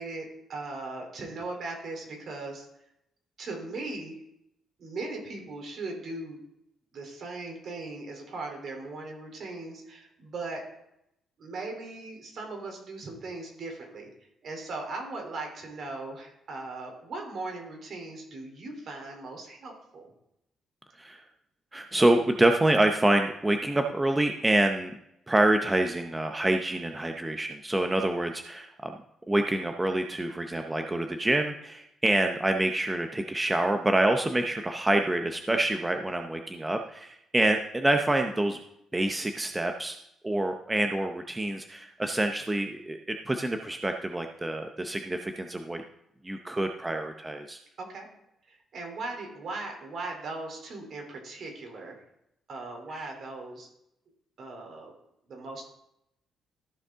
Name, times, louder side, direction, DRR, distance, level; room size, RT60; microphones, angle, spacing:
voice 1, 0.0-2.7 3.4-4.2 4.8-6.4 6.9-10.6 11.4-14.1 14.4-20.1 47.8-48.1 48.5-52.0 52.5-53.7 54.4-54.9 55.3-55.7, right 3 dB, 60° right, 2 dB, 3.2 m, -38 dB
voice 2, 21.7-24.9 25.3-28.9 29.3-38.6 38.9-40.0 40.2-45.8 46.2-47.6 52.9-53.1, right 1 dB, 15° right, 5 dB, 0.7 m, -26 dB
14.5 x 5.3 x 3.6 m, 0.81 s
cardioid pair, 90°, 0 cm